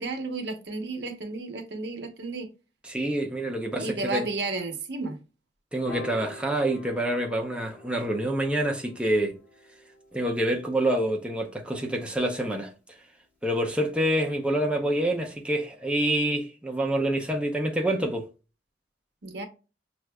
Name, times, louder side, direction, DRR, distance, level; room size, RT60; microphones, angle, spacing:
voice 1, 0.0-2.5 3.8-5.2 19.2-19.4, right 3 dB, 70° right, 0.9 m, -32 dB
voice 2, 2.8-4.3 5.7-9.3 10.1-12.7 13.4-18.2, right 1 dB, 5° right, 0.7 m, -27 dB
Piano, 5.9-12.3, left 2 dB, 10° left, 1.2 m, -47 dB
6.0 x 2.5 x 2.2 m
head